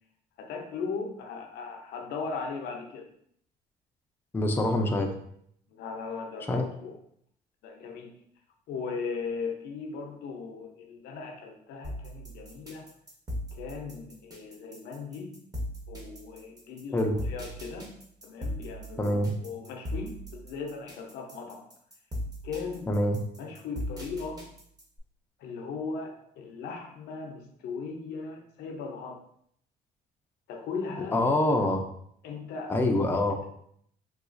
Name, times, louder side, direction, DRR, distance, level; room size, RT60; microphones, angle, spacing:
voice 1, 0.4-3.1 5.7-7.0 7.6-8.1 8.7-12.9 13.5-15.4 15.9-17.9 18.2-21.6 22.4-22.9 23.4-24.5 25.4-29.2 30.5-31.2 32.2-32.7, left 5 dB, 75° left, 3 dB, 0.6 m, -38 dB
voice 2, 4.3-5.1 6.5-6.6 16.9-17.1 19.0-19.3 22.9-23.2 31.1-31.8 32.7-33.4, left 1 dB, 15° left, 3 dB, 0.4 m, -25 dB
sound 1, 11.8-25.0, equal, 20° right, 0.9 m, -38 dB
3.8 x 2.3 x 2.5 m, 0.68 s
cardioid pair, 110°, 17 cm